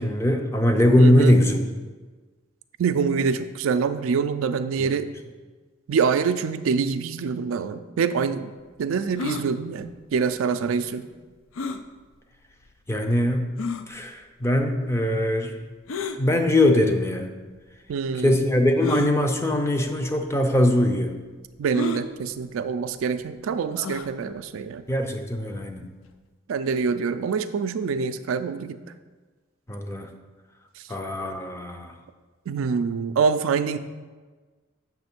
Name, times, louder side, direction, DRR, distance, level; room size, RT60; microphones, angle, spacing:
voice 1, 0.0-1.6 4.8-4.9 12.9-13.5 13.9-15.6 16.2-17.3 18.2-21.1 24.9-25.9 29.7-30.1 30.9-31.9, left 1 dB, 15° left, 4 dB, 0.5 m, -21 dB
voice 2, 1.0-1.4 2.8-5.1 5.9-11.1 17.9-18.4 21.6-24.8 26.5-28.8 30.8-30.9 32.5-33.8, right 5 dB, 90° right, 11 dB, 0.4 m, -25 dB
sound 1, 9.2-9.5 11.5-11.8 12.6-12.7 13.6-13.8 15.9-16.2 17.2-17.3 18.8-19.1 20.0-20.2 20.5-20.6 21.7-22.0 23.7-24.1, left 2 dB, 80° left, 0.4 m, -30 dB
7.0 x 3.2 x 6.0 m, 1.3 s
head